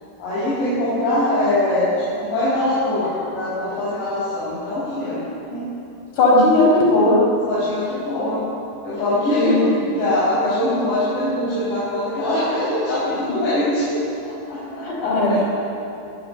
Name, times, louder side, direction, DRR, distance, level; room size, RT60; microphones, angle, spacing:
voice 1, 0.2-5.2 5.5-5.7 7.5-8.4 8.8-14.0 14.5-15.4, left 1 dB, 60° left, -11 dB, 7.7 m, -22 dB
voice 2, 6.2-7.2 9.3-9.6 14.8-15.4, left 2 dB, 40° left, -4 dB, 6.2 m, -16 dB
22.5 x 12.5 x 9.1 m, 2.8 s
omnidirectional pair, 5.5 m